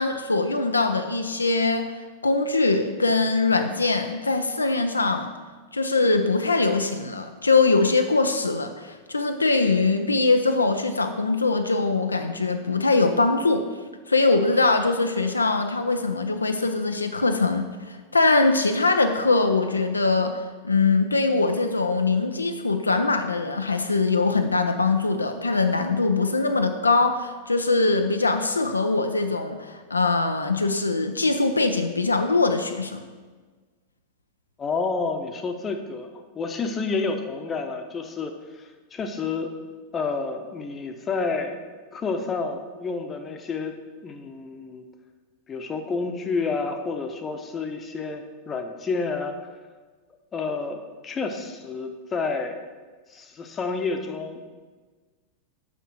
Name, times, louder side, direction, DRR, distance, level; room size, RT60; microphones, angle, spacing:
voice 1, 0.0-1.9 2.2-5.3 5.7-13.6 14.1-33.0, left 3 dB, 80° left, 6 dB, 0.4 m, -22 dB
voice 2, 34.6-39.5 39.9-41.6 41.9-43.7 44.0-44.8 45.5-49.4 50.3-52.5 53.1-54.4, left 4 dB, 20° left, 5 dB, 0.8 m, -29 dB
6.0 x 5.9 x 6.1 m, 1.4 s
figure-of-eight pair, 90°, 0 cm